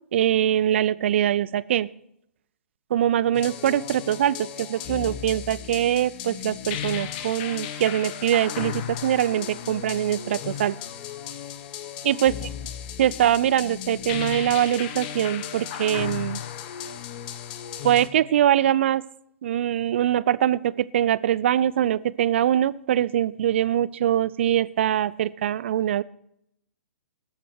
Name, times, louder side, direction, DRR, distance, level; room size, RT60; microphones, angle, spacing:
voice 1, 0.1-1.9 2.9-10.8 12.0-12.5 13.0-16.4 17.8-19.0 19.4-26.0, right 11 dB, 55° right, 20 dB, 0.5 m, -23 dB
sound 1, 3.3-18.1, left 10 dB, 40° left, 1.0 m, -35 dB
19.0 x 7.8 x 4.5 m, 0.75 s
figure-of-eight pair, 120°, 8 cm